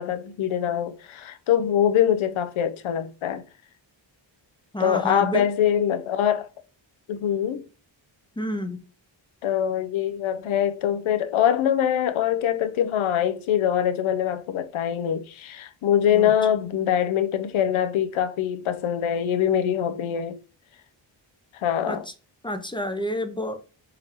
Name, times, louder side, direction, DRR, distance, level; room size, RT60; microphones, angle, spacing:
voice 1, 0.0-3.4 4.8-6.5 7.1-7.6 9.4-20.4 21.6-22.0, left 9 dB, 85° left, 0.6 m, -23 dB
voice 2, 4.7-5.5 8.4-8.8 16.1-16.3 21.8-22.1 22.4-23.6, equal, 10° left, 0.4 m, -29 dB
3.8 x 3.1 x 2.8 m
wide cardioid pair, 95°, 47 cm